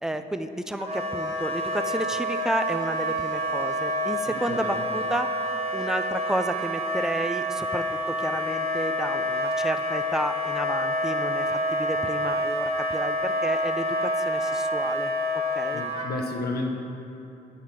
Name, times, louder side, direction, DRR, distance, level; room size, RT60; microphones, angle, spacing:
voice 1, 0.0-5.3 5.7-15.1 15.6-15.8, right 1 dB, 5° right, 9 dB, 0.4 m, -31 dB
Wind instrument woodwind instrument, 0.8-16.1, equal, 30° right, 1.2 m, -28 dB
voice 2, 4.3-4.7 15.7-16.7, left 2 dB, 50° left, 2 dB, 0.9 m, -32 dB
8.5 x 4.7 x 5.8 m, 2.9 s
cardioid pair, 90°, 20 cm